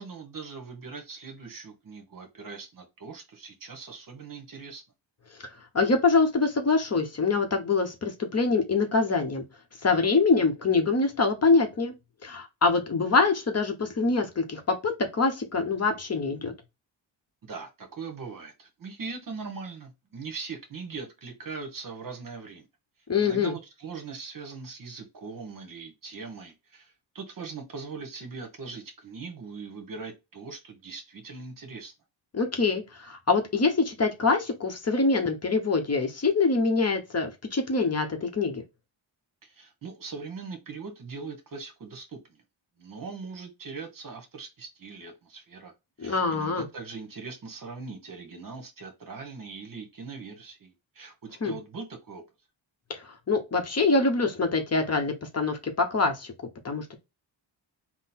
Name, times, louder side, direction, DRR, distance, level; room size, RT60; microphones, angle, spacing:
voice 1, 0.0-4.8 17.4-22.7 23.2-31.9 39.4-42.4 42.8-45.7 46.0-52.2, right 4 dB, 45° right, 1.1 m, -41 dB
voice 2, 5.7-9.4 9.8-11.9 12.2-16.5 23.1-23.5 32.3-38.6 46.0-46.6 51.4-51.5 52.9-56.3 56.6-57.0, left 4 dB, 35° left, 0.8 m, -25 dB
3.8 x 2.1 x 4.2 m
cardioid pair, 110°, 46 cm